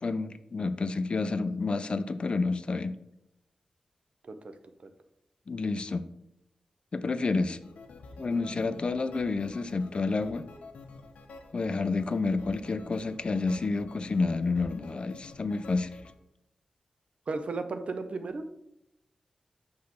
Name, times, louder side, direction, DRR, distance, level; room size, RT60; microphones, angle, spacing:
voice 1, 0.0-3.0 5.5-6.1 6.9-7.6 8.2-10.5 11.5-15.9, left 3 dB, 50° left, 12 dB, 0.4 m, -29 dB
sound 1, 7.5-16.1, left 3 dB, 85° left, 0.7 m, -49 dB
voice 2, 17.3-18.4, right 3 dB, 60° right, 8 dB, 0.6 m, -35 dB
6.0 x 3.2 x 5.7 m, 0.82 s
cardioid pair, 70°, 2 cm